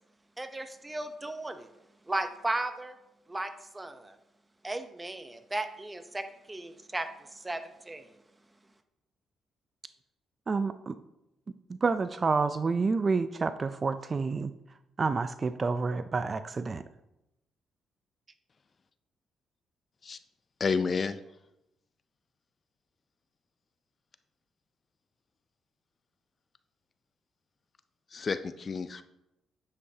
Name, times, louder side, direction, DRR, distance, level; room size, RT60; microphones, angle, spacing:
voice 1, 0.4-1.7 2.1-2.9 3.3-4.2 4.6-8.1, right 2 dB, 15° right, 8 dB, 0.8 m, -36 dB
voice 2, 10.5-11.0 11.7-14.5 15.0-16.8, right 4 dB, 35° right, 12 dB, 0.4 m, -29 dB
voice 3, 20.6-21.2 28.1-29.0, left 5 dB, 40° left, 12 dB, 0.4 m, -30 dB
9.7 x 7.7 x 2.8 m, 0.89 s
cardioid pair, 90°, 0 cm